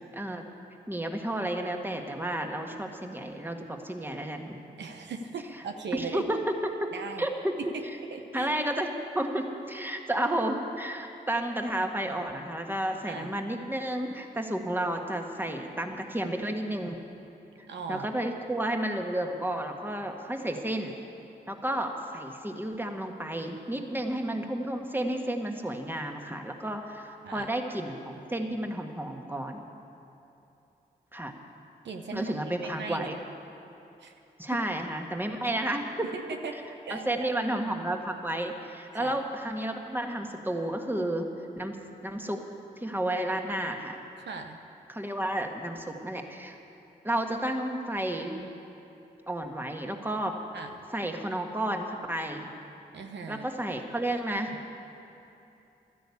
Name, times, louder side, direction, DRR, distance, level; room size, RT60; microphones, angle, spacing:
voice 1, 0.1-0.5 0.9-4.6 6.0-6.9 7.2-7.5 8.3-17.0 17.9-20.9 21.5-29.6 31.1-31.3 32.1-33.2 34.4-36.1 36.9-41.3 41.6-41.8 42.0-42.4 42.8-44.0 44.9-46.6 47.0-48.5 49.3-50.3 50.9-52.5 53.3-54.6, right 1 dB, 10° right, 3 dB, 1.7 m, -32 dB
voice 2, 4.8-6.2 6.9-7.2 7.7-7.8 8.1-8.5 13.1-13.3 17.7-18.1 27.2-27.5 31.8-32.4 32.8-33.1 34.0-34.1 36.1-36.5 36.8-37.3 38.9-39.2 44.2-44.6 50.5-50.9 52.9-53.5, right 5 dB, 75° right, 5 dB, 0.9 m, -38 dB
13.0 x 10.0 x 8.5 m, 2.9 s
supercardioid pair, 40°, 19 cm